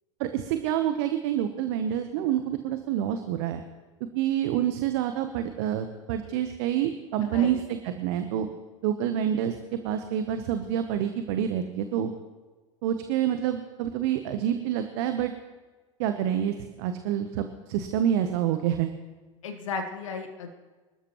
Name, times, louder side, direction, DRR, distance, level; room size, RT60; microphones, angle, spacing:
voice 1, 0.2-3.6 4.1-8.5 8.8-12.1 12.8-15.3 16.0-18.9, right 10 dB, 55° right, 8 dB, 1.0 m, -27 dB
voice 2, 7.2-7.6 19.4-20.5, left 4 dB, 70° left, 6 dB, 1.4 m, -34 dB
25.0 x 13.0 x 3.1 m, 1.3 s
figure-of-eight pair, 85°, 17 cm